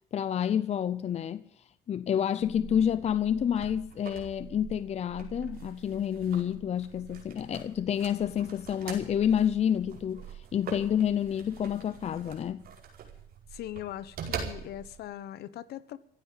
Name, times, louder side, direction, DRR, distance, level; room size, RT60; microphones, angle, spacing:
voice 1, 0.1-1.4 1.9-12.6, left 9 dB, 40° left, 0.6 m, -29 dB
sound 1, 2.4-15.0, right 7 dB, 60° right, 4.8 m, -44 dB
voice 2, 13.5-16.0, left 12 dB, 70° left, 1.1 m, -40 dB
15.5 x 8.5 x 8.9 m
cardioid pair, 110°, 17 cm